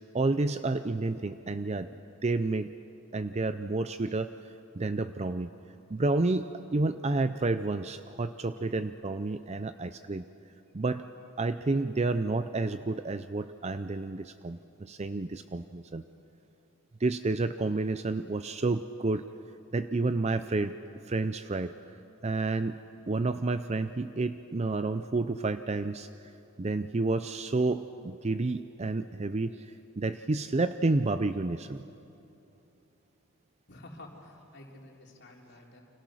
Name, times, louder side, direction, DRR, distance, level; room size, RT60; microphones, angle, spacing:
voice 1, 0.1-1.9 2.2-2.7 3.1-4.3 4.7-5.5 5.9-10.2 10.7-11.0 11.4-16.0 17.0-19.3 19.7-20.7 21.1-21.7 22.2-22.8 23.1-26.1 26.6-29.7 30.0-31.8, right 3 dB, 30° right, 11 dB, 0.5 m, -30 dB
voice 2, 33.7-35.8, left 1 dB, 50° left, 0 dB, 3.7 m, -50 dB
29.5 x 25.5 x 6.3 m, 2.9 s
head